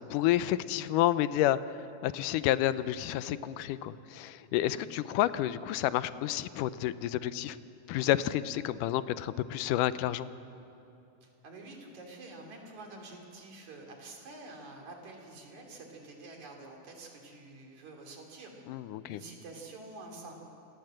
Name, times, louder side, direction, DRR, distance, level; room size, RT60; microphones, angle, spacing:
voice 1, 0.1-7.6 7.9-10.3 18.7-19.2, left 13 dB, 85° left, 14 dB, 2.2 m, -30 dB
voice 2, 11.2-18.7 19.1-20.4, right 2 dB, 65° right, 1 dB, 4.4 m, -48 dB
28.0 x 18.5 x 7.8 m, 2.9 s
omnidirectional pair, 3.6 m